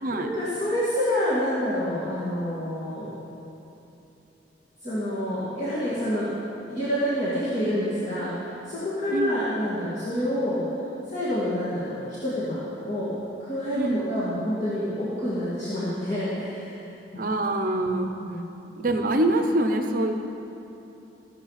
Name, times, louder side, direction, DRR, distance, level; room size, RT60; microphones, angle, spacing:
voice 1, 0.0-3.1 4.8-6.3 6.7-10.8 11.1-13.1 13.4-16.9 17.7-18.4, equal, 40° left, -11 dB, 2.3 m, -28 dB
voice 2, 9.1-9.5 13.7-14.0 17.2-18.1 18.8-20.1, right 1 dB, 45° right, 5 dB, 0.7 m, -25 dB
15.5 x 7.4 x 5.8 m, 3.0 s
head